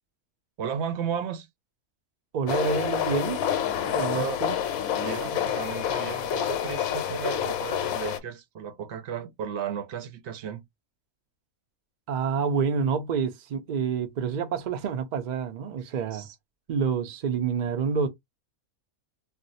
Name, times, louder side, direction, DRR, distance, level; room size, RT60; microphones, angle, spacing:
voice 1, 0.6-1.5 3.8-4.5 5.0-10.6 15.8-16.4, right 8 dB, 65° right, 0.7 m, -34 dB
voice 2, 2.3-3.4 3.9-4.5 12.1-16.3 16.7-18.1, right 6 dB, 90° right, 0.4 m, -28 dB
sound 1, 2.5-8.2, left 9 dB, 80° left, 1.0 m, -28 dB
2.6 x 2.0 x 3.9 m
omnidirectional pair, 1.5 m